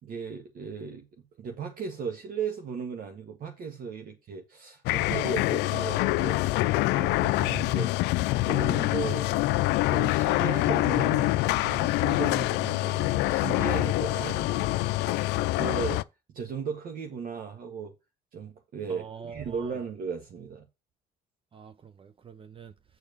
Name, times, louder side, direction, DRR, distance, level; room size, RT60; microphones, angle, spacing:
voice 1, 0.0-6.4 6.9-7.9 8.4-9.3 9.9-14.8 15.0-16.0 16.3-17.9 18.3-20.7, right 6 dB, 55° right, 1.6 m, -36 dB
sound 1, 4.9-16.0, left 18 dB, 90° left, 0.4 m, -25 dB
voice 2, 18.9-19.7 21.5-22.7, right 6 dB, 30° right, 0.6 m, -45 dB
7.1 x 4.4 x 6.6 m
cardioid pair, 110°, 17 cm